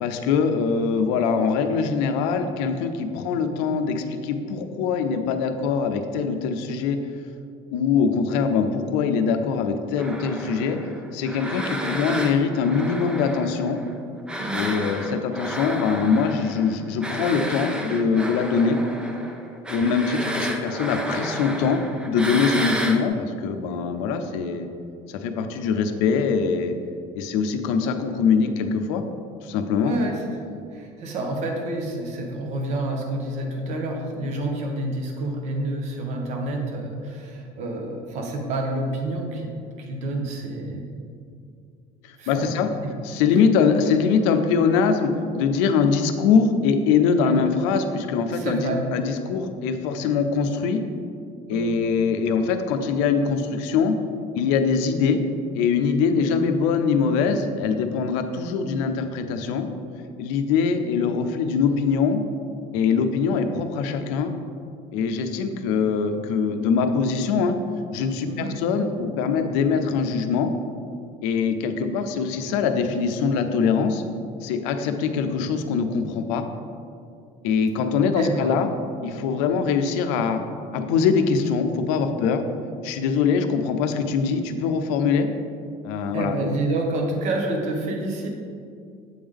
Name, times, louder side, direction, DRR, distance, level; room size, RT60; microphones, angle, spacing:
voice 1, 0.0-7.0 7.7-10.8 11.1-13.8 14.5-18.8 19.7-24.7 25.1-26.7 27.1-29.0 29.4-29.9 42.3-42.7 43.0-50.8 51.5-54.0 54.3-55.2 55.5-59.7 60.2-62.2 62.7-64.3 64.9-67.6 67.9-70.5 71.2-74.0 74.4-76.4 77.4-78.7 79.0-80.4 80.7-82.4 82.8-85.3 85.8-86.4, left 5 dB, 85° left, 7 dB, 0.5 m, -23 dB
sound 1, 10.0-13.9 14.3-23.0, equal, 5° right, 0.3 m, -32 dB
voice 2, 14.4-14.7 29.8-30.4 30.7-39.5 39.8-40.9 42.2-42.5 42.8-43.0 47.2-47.4 48.3-48.8 51.5-51.8 68.2-68.5 78.2-78.6 86.1-88.3, right 2 dB, 45° right, 2 dB, 0.9 m, -28 dB
7.7 x 3.4 x 3.6 m, 2.4 s
cardioid pair, 165°, 16 cm